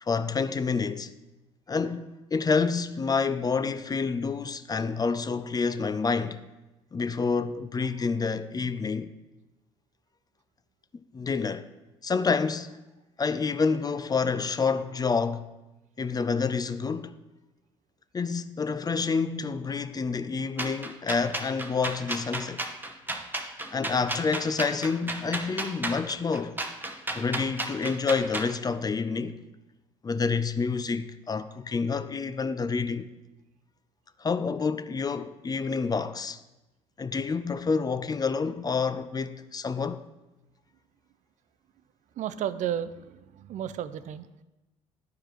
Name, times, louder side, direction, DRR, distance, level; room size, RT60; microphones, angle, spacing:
voice 1, 0.0-1.1 1.7-6.4 6.9-9.1 11.1-11.7 12.0-12.8 13.2-15.5 16.0-17.1 18.1-22.7 23.7-26.6 27.1-29.4 30.0-33.1 34.2-36.4 37.0-40.0, left 5 dB, 25° left, 0.5 m, -28 dB
sound 1, 20.6-28.5, right 2 dB, 10° right, 0.8 m, -33 dB
voice 2, 42.2-44.4, right 10 dB, 50° right, 0.4 m, -33 dB
11.5 x 4.8 x 3.0 m
hypercardioid pair, 55°, 16 cm